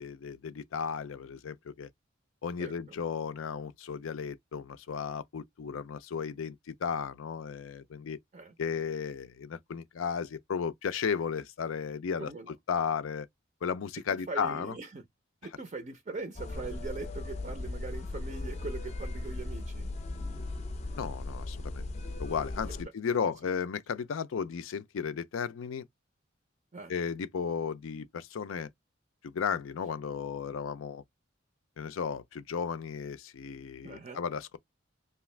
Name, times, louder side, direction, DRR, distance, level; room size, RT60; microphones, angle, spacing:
voice 1, 0.0-1.9 2.4-8.2 8.6-13.3 13.6-14.8 21.0-21.9 22.2-25.8 26.9-28.7 29.2-31.0 31.8-34.6, left 6 dB, 90° left, 0.4 m, -34 dB
voice 2, 12.2-12.5 14.1-15.0 15.4-19.9 26.7-26.9 33.8-34.2, right 3 dB, 35° right, 0.4 m, -41 dB
sound 1, 16.4-22.8, left 2 dB, 35° left, 0.5 m, -37 dB
2.7 x 2.4 x 3.1 m
head